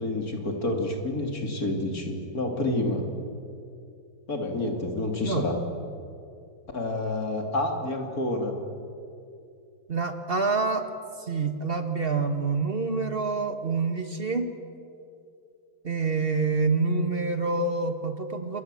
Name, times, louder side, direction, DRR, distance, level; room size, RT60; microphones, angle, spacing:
voice 1, 0.0-3.0 4.3-5.6 6.7-8.5, left 2 dB, 45° left, 3 dB, 3.3 m, -28 dB
voice 2, 9.9-10.8 11.2-14.5 15.8-18.6, right 4 dB, 30° right, 7 dB, 1.6 m, -27 dB
27.5 x 22.0 x 7.7 m, 2.5 s
omnidirectional pair, 2.1 m